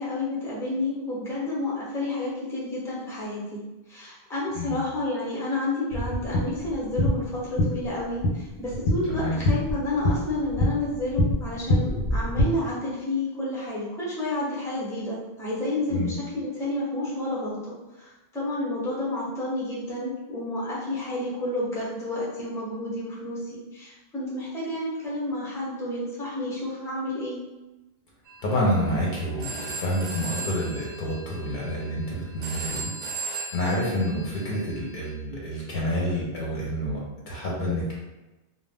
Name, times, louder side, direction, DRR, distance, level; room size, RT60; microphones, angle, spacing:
voice 1, 0.0-3.6 3.9-27.4, left 1 dB, 5° left, -7 dB, 0.6 m, -30 dB
sound 1, 5.9-12.4, left 1 dB, 90° left, 0.8 m, -26 dB
voice 2, 9.0-9.4 15.9-16.1 28.4-37.9, equal, 60° left, -5 dB, 0.7 m, -28 dB
Telephone, 28.3-35.2, right 3 dB, 55° right, 0.6 m, -38 dB
2.4 x 2.0 x 3.4 m, 1.1 s
omnidirectional pair, 1.0 m